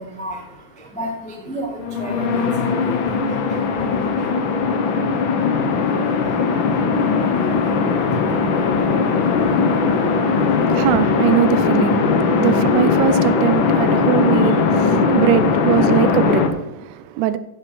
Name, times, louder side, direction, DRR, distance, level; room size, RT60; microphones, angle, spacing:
voice 1, 0.0-10.9 12.3-12.4 14.9-15.2, right 1 dB, 10° left, 0.4 m, -36 dB
sound 1, 1.8-16.5, left 4 dB, 80° left, 1.1 m, -19 dB
voice 2, 9.4-17.4, right 11 dB, 80° right, 2.0 m, -22 dB
15.5 x 6.8 x 4.5 m
omnidirectional pair, 3.6 m